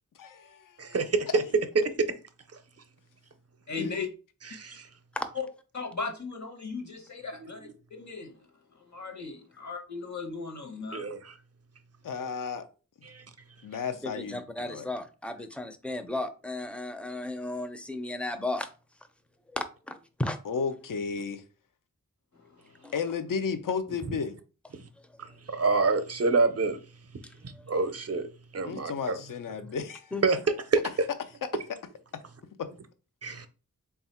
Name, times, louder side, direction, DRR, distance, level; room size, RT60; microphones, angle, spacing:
voice 1, 0.2-1.0 3.8-4.0 12.0-12.6 13.6-14.9 20.5-21.4 22.9-24.4 28.6-30.1 32.6-32.7, left 5 dB, 70° left, 0.5 m, -33 dB
voice 2, 0.8-1.4 1.7-2.1 4.4-4.9 7.6-7.7 10.9-11.4 13.0-13.2 24.1-24.2 25.2-26.8 27.4-28.3 28.5-29.2 30.2-30.4 30.7-30.9 33.2-33.5, right 4 dB, 45° right, 0.5 m, -27 dB
voice 3, 3.7-4.1 5.7-8.3 8.9-11.0, left 4 dB, 55° left, 1.0 m, -37 dB
voice 4, 14.0-18.7 19.5-20.4 22.8-22.9 30.1-30.2, left 2 dB, 5° left, 0.4 m, -34 dB
3.4 x 2.4 x 4.2 m
wide cardioid pair, 60°, 33 cm